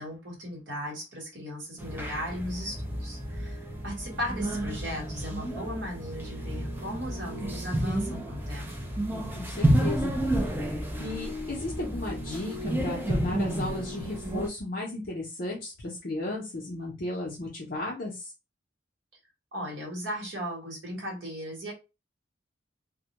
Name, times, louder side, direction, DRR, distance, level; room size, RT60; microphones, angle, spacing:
voice 1, 0.0-8.7 19.5-21.7, equal, 65° right, -1 dB, 1.1 m, -37 dB
sound 1, 1.8-14.5, right 1 dB, 10° right, 0.4 m, -31 dB
voice 2, 9.1-10.1 11.0-18.3, left 2 dB, 50° left, -3 dB, 0.6 m, -35 dB
2.1 x 2.1 x 2.8 m, 0.27 s
head